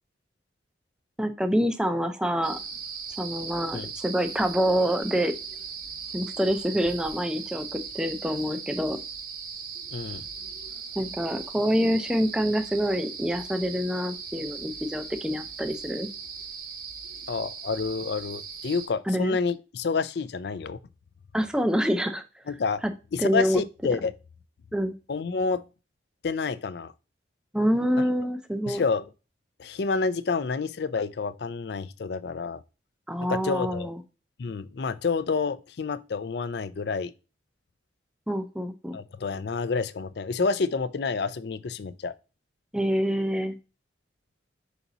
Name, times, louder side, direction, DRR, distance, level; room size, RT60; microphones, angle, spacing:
voice 1, 1.2-2.6 3.2-5.3 6.1-9.0 11.0-16.1 19.1-19.4 21.3-22.2 23.2-23.6 24.7-24.9 27.5-28.8 33.1-34.0 38.3-39.0 42.7-43.5, equal, 5° right, 0.5 m, -26 dB
Hmong Village at Night, 2.4-18.9, right 6 dB, 50° right, 0.9 m, -38 dB
voice 2, 9.9-10.3 17.3-20.8 22.5-22.8 23.1-24.1 25.1-25.6 26.2-26.9 28.0-28.1 28.7-29.1 29.6-32.6 33.2-33.9 34.4-37.1 38.9-42.1, left 4 dB, 55° left, 0.4 m, -29 dB
5.9 x 4.1 x 3.9 m
head